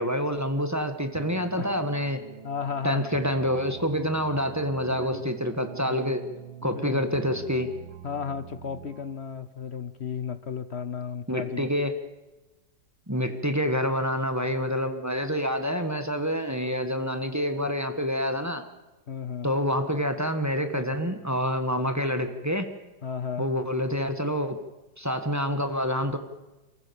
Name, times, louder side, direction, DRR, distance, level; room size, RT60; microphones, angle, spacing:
voice 1, 0.0-2.2 2.8-6.2 6.6-7.7 11.3-11.9 13.1-18.6 19.4-22.7 23.4-24.6 25.0-26.2, equal, 10° right, 7 dB, 1.3 m, -27 dB
sound 1, 1.1-9.2, right 10 dB, 85° right, 1.9 m, -45 dB
voice 2, 2.4-3.2 4.9-5.3 5.8-6.1 6.6-7.0 8.0-11.7 13.3-13.4 19.1-19.5 23.0-23.5, left 6 dB, 50° left, 13 dB, 0.9 m, -34 dB
29.0 x 15.0 x 7.1 m, 1.1 s
omnidirectional pair, 2.0 m